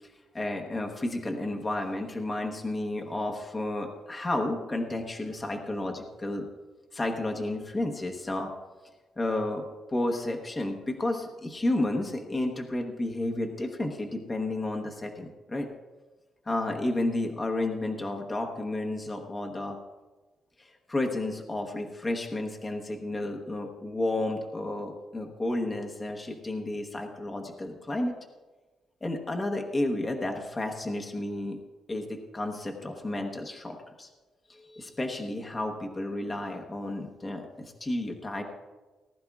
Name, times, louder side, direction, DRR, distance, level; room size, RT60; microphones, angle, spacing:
voice 1, 0.3-6.4 6.9-8.5 9.2-15.7 16.4-19.8 20.6-28.2 29.0-31.6 31.9-34.1 34.5-38.4, left 2 dB, 20° left, 2 dB, 1.0 m, -32 dB
19.0 x 12.0 x 2.4 m, 1.2 s
cardioid pair, 160°, 0 cm